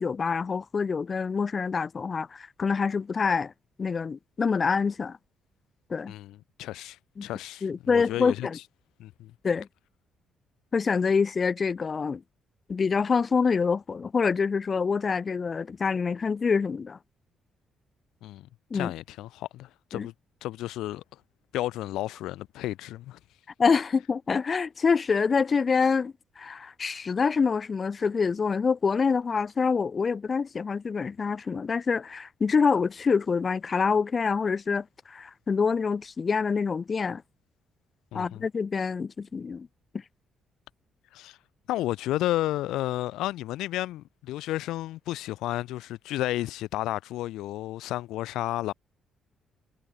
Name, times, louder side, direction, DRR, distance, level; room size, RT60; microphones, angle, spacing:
voice 1, 0.0-3.5 3.8-5.2 5.9-6.1 7.2-7.3 7.6-8.6 9.4-9.7 10.7-12.2 12.7-17.0 18.7-18.9 19.9-20.1 23.6-37.2 38.1-39.7, left 5 dB, 40° left, 0.8 m, -26 dB
voice 2, 6.1-8.6 9.0-9.3 18.2-20.1 20.4-21.0 21.5-23.2 38.1-38.4 41.1-41.4 41.7-48.7, left 15 dB, 90° left, 1.1 m, -32 dB
cardioid pair, 90°, 0 cm